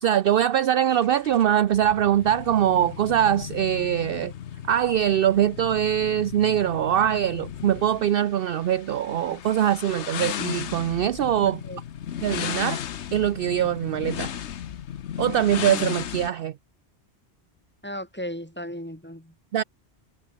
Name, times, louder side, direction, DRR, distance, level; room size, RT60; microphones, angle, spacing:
voice 1, 0.0-4.3 4.7-11.6 12.2-12.8 13.1-14.3 15.2-16.5 19.5-19.6, right 10 dB, 60° right, 0.7 m, -22 dB
sound 1, 0.9-16.3, left 9 dB, 75° left, 1.1 m, -35 dB
voice 2, 11.4-11.8 17.8-19.3, equal, 10° left, 4.6 m, -36 dB
omnidirectional pair, 1.2 m